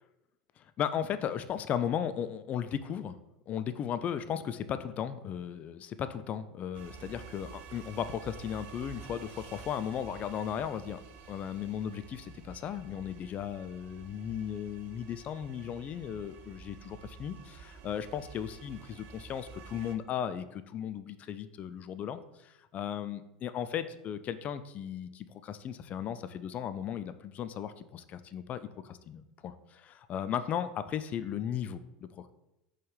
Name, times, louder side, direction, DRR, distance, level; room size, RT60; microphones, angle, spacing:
voice 1, 0.6-3.2 3.5-11.0 11.3-32.3, left 9 dB, 35° left, 12 dB, 0.3 m, -36 dB
sound 1, 6.7-20.0, right 6 dB, 50° right, 0.5 m, -50 dB
4.2 x 3.2 x 3.8 m, 0.92 s
hypercardioid pair, 85°, 4 cm